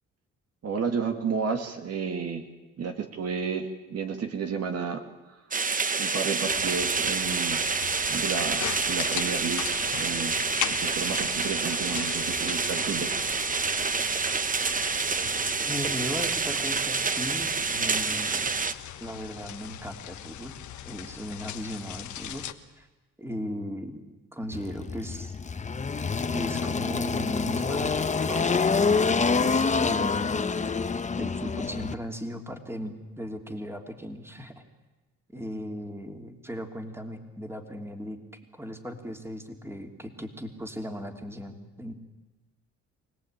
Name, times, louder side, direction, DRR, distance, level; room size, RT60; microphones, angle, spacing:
voice 1, 0.6-2.5 2.8-5.0 6.0-7.6 8.1-10.4 10.7-13.4, right 5 dB, 55° right, 5 dB, 2.1 m, -32 dB
sound 1, 5.5-18.7, right 4 dB, 25° right, 1.0 m, -28 dB
sound 2, 6.5-22.5, left 11 dB, 75° left, 1.3 m, -39 dB
voice 2, 15.6-18.5 19.0-20.5 20.8-22.4 22.8-22.9 23.2-24.0 24.3-25.4 26.3-30.7 31.2-34.6 35.3-41.9, equal, 10° right, 4 dB, 2.9 m, -37 dB
Engine, 24.5-31.9, left 4 dB, 25° left, 0.9 m, -26 dB
25.0 x 18.0 x 8.9 m, 1.2 s
cardioid pair, 90°, 30 cm